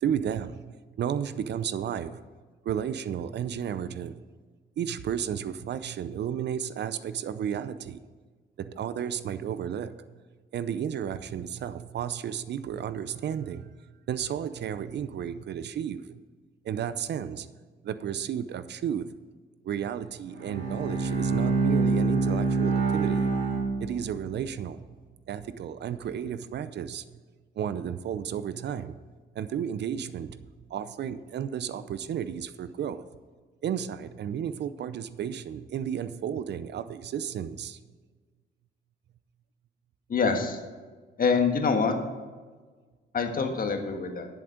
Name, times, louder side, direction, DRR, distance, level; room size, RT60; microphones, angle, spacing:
voice 1, 0.0-2.2 2.6-4.2 4.8-8.0 8.6-10.0 10.5-13.7 14.1-16.2 16.6-17.5 17.8-19.1 19.6-23.3 23.8-24.8 25.3-27.0 27.6-29.0 29.3-30.4 30.7-33.0 33.6-37.8, right 9 dB, 60° right, 13 dB, 0.6 m, -33 dB
Bowed string instrument, 20.3-24.4, right 4 dB, 80° right, 2.8 m, -26 dB
voice 2, 40.1-40.6 41.2-41.9 43.1-44.3, left 5 dB, 45° left, 5 dB, 1.5 m, -25 dB
10.5 x 7.3 x 5.1 m, 1.4 s
cardioid pair, 90°, 20 cm